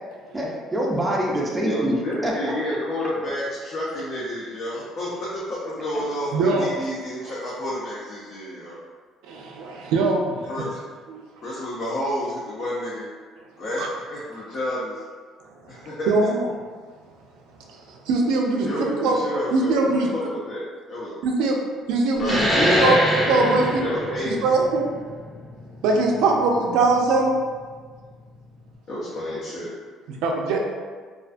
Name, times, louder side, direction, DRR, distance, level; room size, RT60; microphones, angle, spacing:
voice 1, 0.3-2.0 2.2-2.5 22.5-22.9, equal, 10° right, -3 dB, 0.5 m, -24 dB
voice 2, 1.6-8.8 10.4-10.8 11.4-13.1 13.6-15.0 15.7-16.3 18.6-21.1 22.2-22.9 23.8-24.4 28.9-29.7, left 1 dB, 50° left, -8 dB, 0.6 m, -30 dB
voice 3, 6.3-6.7 9.2-10.4 11.1-11.2 13.8-13.9 15.4-16.5 17.7-19.2 19.5-20.3 21.2-21.6 21.9-22.4 22.8-23.0 23.3-23.9 24.3-24.9 25.8-27.4 30.2-30.6, right 3 dB, 90° right, 1 dB, 0.4 m, -22 dB
sound 1, 22.2-27.3, equal, 15° left, 0.8 m, -25 dB
2.4 x 2.3 x 2.5 m, 1.5 s
cardioid pair, 130°, 0 cm